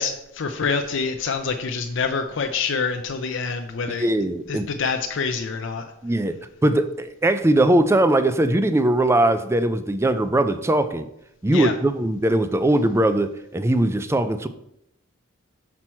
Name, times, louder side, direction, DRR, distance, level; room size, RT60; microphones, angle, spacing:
voice 1, 0.0-4.1 4.5-5.8 11.5-11.7, left 5 dB, 60° left, 6 dB, 0.5 m, -26 dB
voice 2, 4.0-4.7 6.0-6.3 6.6-11.1 11.4-14.5, right 1 dB, 15° right, 11 dB, 0.4 m, -20 dB
6.1 x 5.8 x 4.4 m, 0.78 s
head